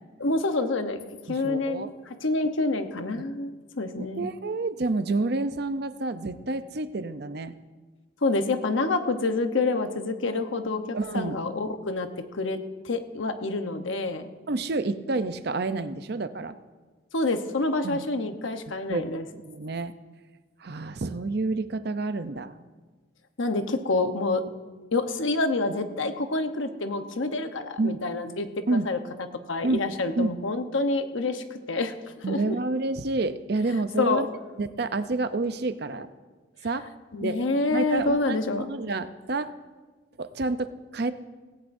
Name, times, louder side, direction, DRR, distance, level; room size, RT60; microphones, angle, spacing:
voice 1, 0.2-1.0 1.3-4.2 8.2-12.6 12.8-14.3 17.1-19.3 23.4-24.4 24.9-29.0 29.5-31.9 32.3-32.6 34.0-34.2 37.1-38.7, left 3 dB, 80° left, 7 dB, 1.0 m, -27 dB
voice 2, 1.3-1.9 4.0-7.5 10.9-11.4 14.5-16.6 17.8-18.0 18.9-19.0 19.4-19.9 20.6-22.5 27.8-28.0 28.7-28.9 29.6-29.8 30.2-30.3 32.2-34.3 34.6-36.1 36.6-36.9 37.2-37.4 37.7-39.5 40.2-41.1, right 3 dB, 55° right, 11 dB, 0.6 m, -29 dB
18.0 x 16.5 x 2.6 m, 1.3 s
head